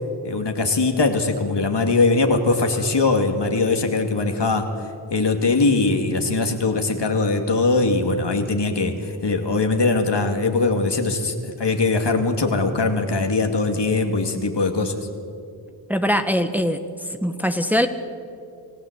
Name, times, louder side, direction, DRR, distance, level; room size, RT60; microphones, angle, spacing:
voice 1, 0.2-4.7 5.1-15.1, left 3 dB, 60° left, 4 dB, 2.7 m, -21 dB
voice 2, 15.9-16.8 17.2-17.9, equal, 5° right, 7 dB, 1.5 m, -21 dB
28.0 x 15.5 x 8.3 m, 2.5 s
cardioid pair, 45°, 46 cm